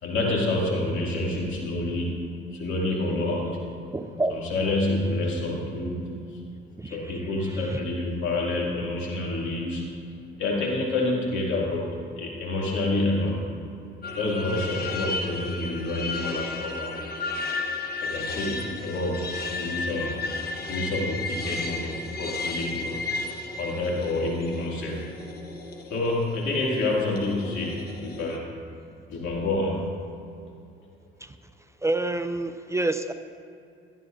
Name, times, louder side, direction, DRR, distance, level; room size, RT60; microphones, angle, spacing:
voice 1, 0.0-3.7 4.3-6.4 6.9-10.1 10.4-11.9 12.2-13.5 14.1-17.1 18.0-20.3 20.7-23.0 23.6-25.2 25.9-28.4 29.1-29.8, left 2 dB, 75° left, -3 dB, 2.6 m, -28 dB
voice 2, 3.9-4.3 6.8-7.2 7.5-7.8 31.2-31.4 31.8-33.1, right 2 dB, 15° right, 9 dB, 0.4 m, -28 dB
sound 1, 14.0-28.4, left 3 dB, 50° left, 1.1 m, -34 dB
17.0 x 11.0 x 2.7 m, 2.6 s
cardioid pair, 90°, 20 cm